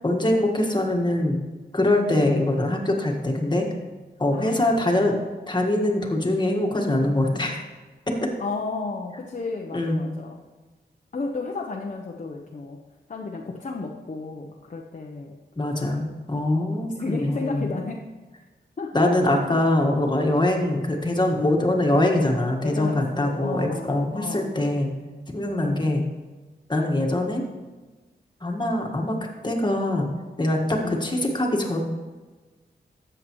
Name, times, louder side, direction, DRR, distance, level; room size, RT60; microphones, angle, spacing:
voice 1, 0.0-1.4 1.7-3.6 4.2-5.1 5.5-7.6 8.1-8.3 9.7-10.0 15.6-17.7 18.9-24.9 25.3-26.0 26.7-27.4 28.4-29.1 29.4-30.1 30.4-31.8, left 1 dB, 25° left, 1 dB, 1.6 m, -23 dB
voice 2, 2.1-2.5 4.3-5.2 8.4-10.4 11.1-12.8 13.1-15.3 15.7-16.1 16.9-18.1 18.8-19.1 22.6-24.5 25.6-26.1 30.8-31.3, left 3 dB, 45° left, 0 dB, 0.8 m, -33 dB
13.0 x 7.9 x 3.1 m, 1.3 s
wide cardioid pair, 80°, 18 cm